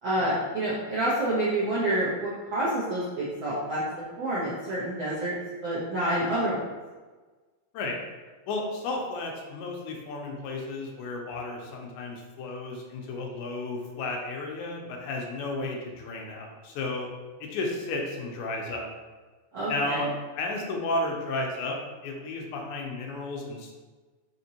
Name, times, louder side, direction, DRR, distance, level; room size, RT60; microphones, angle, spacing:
voice 1, 0.0-3.8 4.2-6.6 19.5-20.0, right 1 dB, 70° right, -10 dB, 1.1 m, -28 dB
voice 2, 8.5-17.1 17.4-18.9 19.7-20.1 20.4-21.8 22.0-23.7, left 2 dB, 80° left, 1 dB, 2.1 m, -33 dB
5.2 x 2.9 x 2.8 m, 1.3 s
omnidirectional pair, 3.4 m